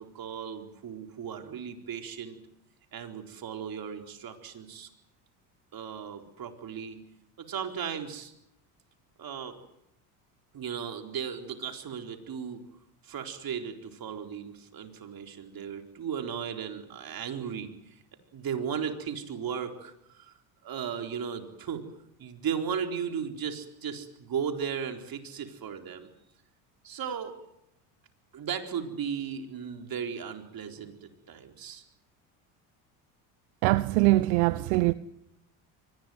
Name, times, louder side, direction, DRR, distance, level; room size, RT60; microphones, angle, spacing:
voice 1, 0.0-2.4 2.9-4.9 5.7-7.0 7.4-8.3 9.2-9.6 10.5-12.6 13.0-18.0 18.3-20.3 20.6-21.9 22.2-26.1 26.8-27.4 28.3-31.8, right 7 dB, 45° right, 4.3 m, -36 dB
voice 2, 33.6-34.9, right 19 dB, 80° right, 0.9 m, -22 dB
24.0 x 20.0 x 9.5 m
supercardioid pair, 80°, 47 cm